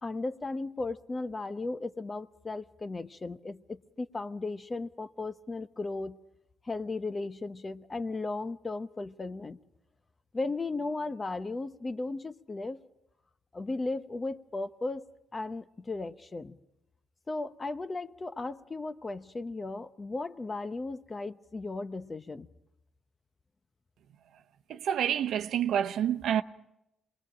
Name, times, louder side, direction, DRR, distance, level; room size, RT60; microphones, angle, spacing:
voice 1, 0.0-6.2 6.6-9.6 10.3-12.8 13.5-15.1 15.3-16.6 17.3-22.5, left 3 dB, 25° left, 0.9 m, -36 dB
voice 2, 24.7-26.4, right 9 dB, 75° right, 0.8 m, -28 dB
27.5 x 21.0 x 5.0 m
cardioid pair, 90°, 0 cm